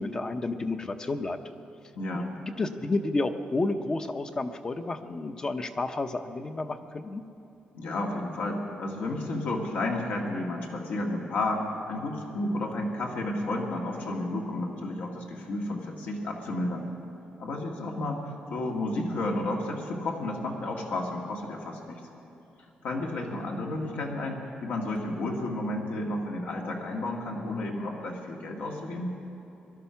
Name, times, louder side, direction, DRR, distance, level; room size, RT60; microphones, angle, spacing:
voice 1, 0.0-1.4 2.1-7.2, left 2 dB, 25° left, 8 dB, 0.7 m, -31 dB
voice 2, 2.0-2.3 7.7-16.9 17.4-22.0 22.8-29.1, left 2 dB, 75° left, 0 dB, 1.9 m, -32 dB
20.0 x 12.0 x 5.8 m, 3.0 s
wide cardioid pair, 165°, 3 cm